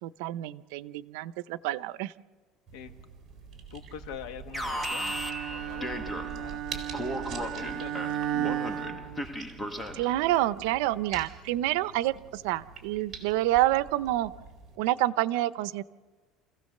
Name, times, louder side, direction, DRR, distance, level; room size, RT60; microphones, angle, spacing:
voice 1, 0.0-2.1 9.9-14.3 14.8-15.8, right 15 dB, 90° right, 15 dB, 0.7 m, -28 dB
sound 1, 2.7-14.8, right 5 dB, 20° right, 4.2 m, -46 dB
voice 2, 3.7-5.2 5.5-7.0 7.4-8.9, left 9 dB, 85° left, 7 dB, 1.6 m, -45 dB
Alarm, 4.5-6.5 6.9-10.2, equal, 10° left, 1.1 m, -36 dB
Bowed string instrument, 4.9-9.8, right 11 dB, 50° right, 1.0 m, -35 dB
28.5 x 16.0 x 6.6 m, 1.3 s
cardioid pair, 155°, 0 cm